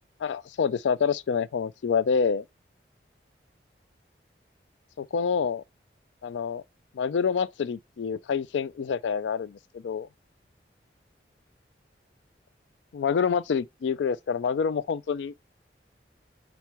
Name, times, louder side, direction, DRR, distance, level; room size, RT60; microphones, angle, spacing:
voice 1, 0.2-2.4 5.0-5.6 6.2-6.6 7.0-10.1 12.9-15.4, left 6 dB, 85° left, 0.4 m, -27 dB
7.4 x 4.1 x 3.3 m
head